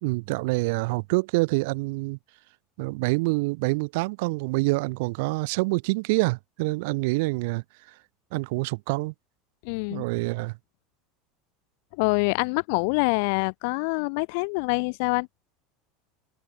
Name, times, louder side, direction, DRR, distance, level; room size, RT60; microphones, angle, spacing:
voice 1, 0.0-2.2 2.8-7.6 8.3-9.1 9.9-10.6, right 26 dB, 70° right, 0.5 m, -26 dB
voice 2, 9.6-10.0 11.9-15.3, left 33 dB, 65° left, 1.1 m, -25 dB
supercardioid pair, 155°, 0 cm